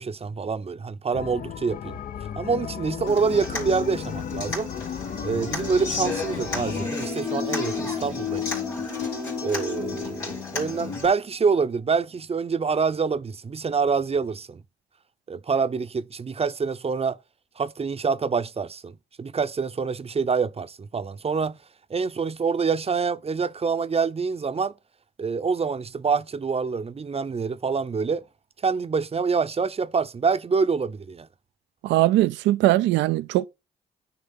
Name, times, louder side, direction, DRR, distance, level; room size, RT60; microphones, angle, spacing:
voice 1, 0.0-2.0 2.4-4.7 5.2-8.6 9.4-14.6 15.3-17.2 17.6-18.9 19.2-21.6 21.9-24.8 25.2-28.3 28.6-31.3, right 5 dB, 30° right, 0.7 m, -26 dB
sound 1, 1.1-6.9, left 8 dB, 50° left, 0.6 m, -36 dB
Human voice / Acoustic guitar, 3.1-11.1, left 5 dB, 85° left, 3.4 m, -31 dB
sound 2, 6.5-11.7, equal, 5° right, 0.9 m, -38 dB
voice 2, 31.8-33.4, right 16 dB, 75° right, 0.4 m, -20 dB
9.7 x 3.3 x 5.6 m
hypercardioid pair, 50°, 19 cm